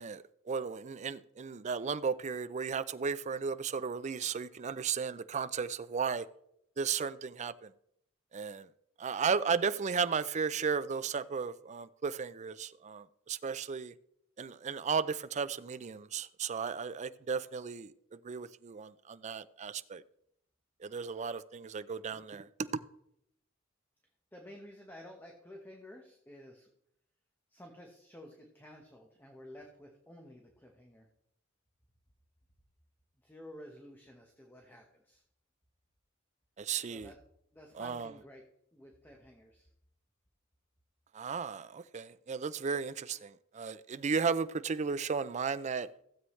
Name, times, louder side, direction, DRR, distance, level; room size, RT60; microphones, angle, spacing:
voice 1, 0.0-6.3 6.8-7.7 8.3-8.7 9.0-13.9 14.4-17.9 18.2-20.0 20.8-22.5 36.6-37.1 37.8-38.1 41.1-45.9, right 5 dB, 35° right, 0.4 m, -35 dB
voice 2, 24.3-26.7 27.5-31.1 33.2-35.2 36.9-37.2 37.5-38.4 38.7-39.7, left 1 dB, 10° left, 1.1 m, -52 dB
15.5 x 7.8 x 3.2 m
head